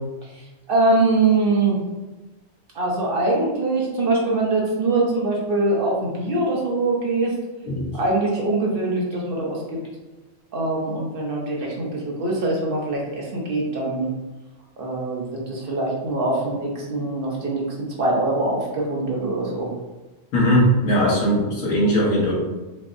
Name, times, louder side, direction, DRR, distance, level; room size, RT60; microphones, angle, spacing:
voice 1, 0.7-1.8 2.7-7.3 7.9-9.8 10.5-14.1 14.8-19.7, right 2 dB, 50° right, -3 dB, 0.9 m, -23 dB
voice 2, 7.6-8.0 20.3-22.3, equal, 85° left, -4 dB, 1.5 m, -19 dB
5.3 x 2.0 x 2.5 m, 1.1 s
omnidirectional pair, 1.4 m